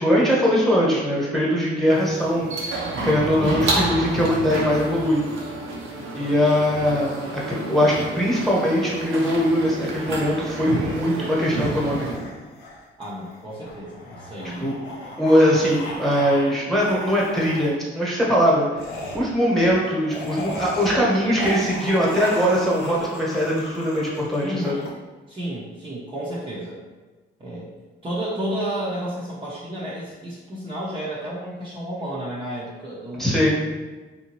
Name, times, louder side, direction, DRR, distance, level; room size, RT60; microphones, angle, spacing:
voice 1, 0.0-2.5 3.0-5.2 6.1-7.2 7.5-12.0 14.6-14.8 15.2-24.8 33.2-33.5, equal, ahead, -5 dB, 1.2 m, -21 dB
sound 1, 1.9-12.1, right 2 dB, 85° right, 0.7 m, -30 dB
voice 2, 3.4-3.8 6.1-6.4 13.0-14.7 24.4-24.9 25.3-26.8 27.4-27.7 28.0-33.5, equal, 25° right, -8 dB, 0.8 m, -32 dB
sound 2, 11.4-16.5 16.8-17.7 18.8-24.9, left 1 dB, 85° left, 0.7 m, -36 dB
3.5 x 2.7 x 3.0 m, 1.3 s
cardioid pair, 90°, 20 cm